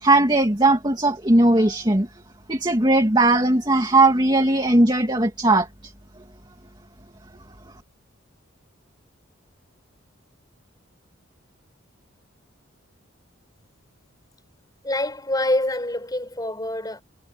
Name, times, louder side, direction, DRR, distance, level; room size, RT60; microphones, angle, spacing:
voice 1, 0.0-2.1 2.5-5.9, right 2 dB, 20° right, 2.5 m, -18 dB
voice 2, 14.8-17.0, left 1 dB, 20° left, 6.0 m, -25 dB
head